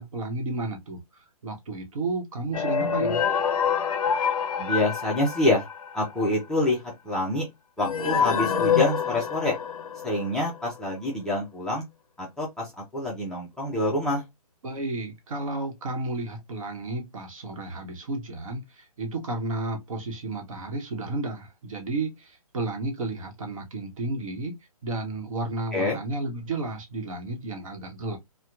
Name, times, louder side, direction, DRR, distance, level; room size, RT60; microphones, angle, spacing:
voice 1, 0.0-3.2 14.6-24.5 24.8-28.2, right 2 dB, 60° right, 1.0 m, -32 dB
sound 1, 2.5-6.2 7.8-10.4, left 7 dB, 60° left, 0.5 m, -26 dB
voice 2, 4.6-5.7 5.9-7.5 7.8-9.6 10.0-11.8 12.2-14.2 25.7-26.0, left 2 dB, 5° left, 0.4 m, -26 dB
2.8 x 2.2 x 2.3 m
hypercardioid pair, 140°, 20 cm